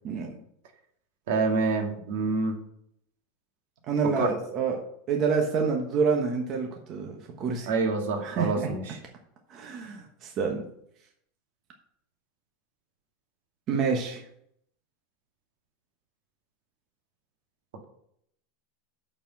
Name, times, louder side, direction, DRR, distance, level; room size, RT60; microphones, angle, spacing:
voice 1, 0.0-0.4 3.9-4.8 5.1-7.7 8.2-8.7 9.5-10.6 13.7-14.2, right 5 dB, 30° right, 1 dB, 1.2 m, -28 dB
voice 2, 1.3-2.6 4.2-4.3 7.7-9.0, right 3 dB, 70° right, 3 dB, 2.1 m, -27 dB
6.8 x 5.9 x 7.5 m, 0.71 s
supercardioid pair, 165°, 0 cm